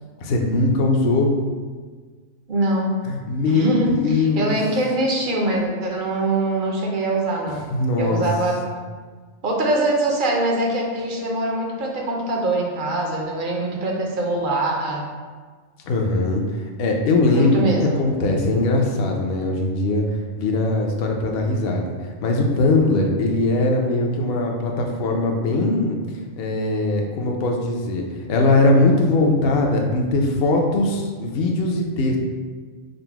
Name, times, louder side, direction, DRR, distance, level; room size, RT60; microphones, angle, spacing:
voice 1, 0.2-1.3 3.1-4.6 7.7-8.2 15.9-16.4 16.8-20.0 20.4-21.9 22.2-26.0 26.4-28.0 28.3-32.2, left 2 dB, 60° left, 1 dB, 0.7 m, -20 dB
voice 2, 2.5-3.0 3.5-7.7 8.0-8.6 9.4-15.1 17.3-18.1, right 2 dB, 55° right, -1 dB, 0.6 m, -23 dB
3.9 x 2.1 x 4.4 m, 1.5 s
omnidirectional pair, 1.3 m